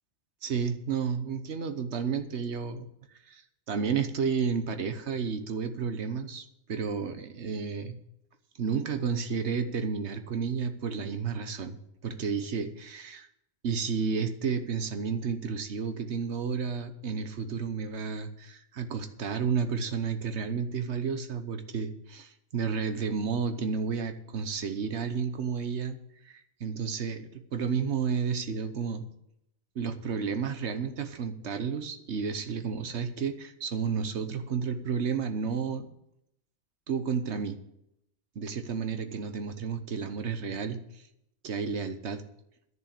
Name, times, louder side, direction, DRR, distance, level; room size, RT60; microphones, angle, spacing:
voice 1, 0.4-2.9 3.3-3.4 3.7-8.0 8.6-11.8 12.0-13.3 13.6-26.0 26.2-29.0 29.7-35.9 36.9-37.6 38.3-41.0 41.4-42.2, right 6 dB, 75° right, 8 dB, 1.2 m, -31 dB
11.0 x 6.7 x 8.4 m, 0.79 s
omnidirectional pair, 1.2 m